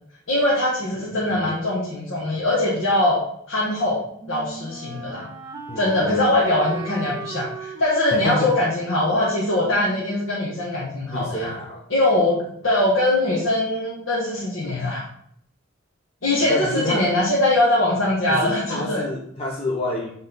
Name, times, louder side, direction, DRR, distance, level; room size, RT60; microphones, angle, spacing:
voice 1, 0.3-5.3 5.7-11.5 11.9-15.0 16.2-19.0, left 1 dB, 85° left, -6 dB, 1.6 m, -22 dB
voice 2, 1.1-1.5 5.7-6.2 8.1-8.5 11.1-11.8 16.5-17.1 18.3-20.1, left 1 dB, 30° left, -2 dB, 0.8 m, -29 dB
Wind instrument woodwind instrument, 3.7-10.6, right 3 dB, 15° right, 1.2 m, -38 dB
8.1 x 3.9 x 3.9 m, 0.66 s
head